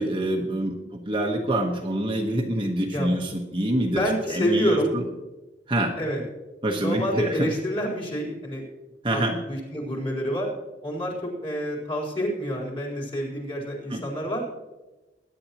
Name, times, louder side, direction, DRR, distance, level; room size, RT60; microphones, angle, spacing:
voice 1, 0.0-4.0 4.3-5.0 5.7-5.9 6.6-7.5 9.0-9.4 13.9-14.0, right 1 dB, 25° right, 1 dB, 1.2 m, -26 dB
voice 2, 3.9-5.0 6.0-6.2 6.8-8.6 9.1-10.5 10.8-14.4, equal, 30° left, -3 dB, 4.1 m, -28 dB
21.0 x 10.5 x 3.0 m, 1.1 s
head